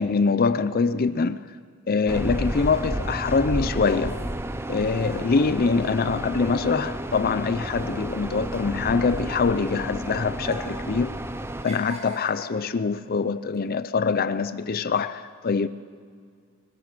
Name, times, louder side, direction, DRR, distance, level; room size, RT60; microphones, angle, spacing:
voice 1, 0.0-1.4 1.9-4.2 4.7-11.2 11.6-15.7, left 4 dB, 40° left, 0.5 m, -24 dB
sound 1, 2.1-11.7, right 1 dB, 10° right, 0.7 m, -32 dB
sound 2, 2.5-7.4 7.6-9.8 10.3-10.9 11.2-12.7 13.4-13.6, right 1 dB, 30° right, 5.0 m, -43 dB
21.5 x 20.0 x 6.0 m
head